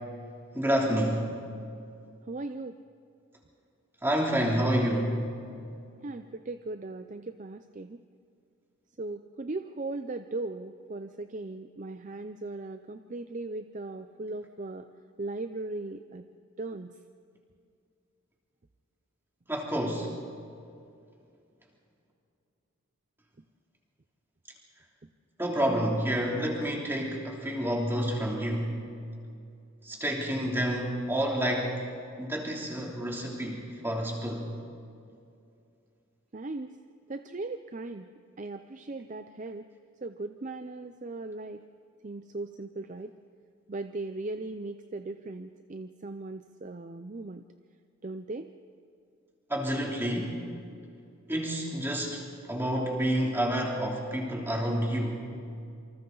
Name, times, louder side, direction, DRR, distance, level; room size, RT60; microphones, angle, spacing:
voice 1, 0.5-1.3 4.0-5.2 19.5-20.1 25.4-28.8 29.8-31.8 32.2-34.5 49.5-50.4 51.3-55.3, equal, 10° right, -1 dB, 3.0 m, -29 dB
voice 2, 2.3-2.8 6.0-8.0 9.0-14.9 15.2-16.3 16.6-17.0 36.3-36.8 37.1-38.1 38.4-39.7 40.0-41.6 42.0-43.1 43.7-47.5 48.0-48.5, right 2 dB, 35° right, 8 dB, 0.5 m, -38 dB
27.5 x 25.5 x 4.0 m, 2.5 s
head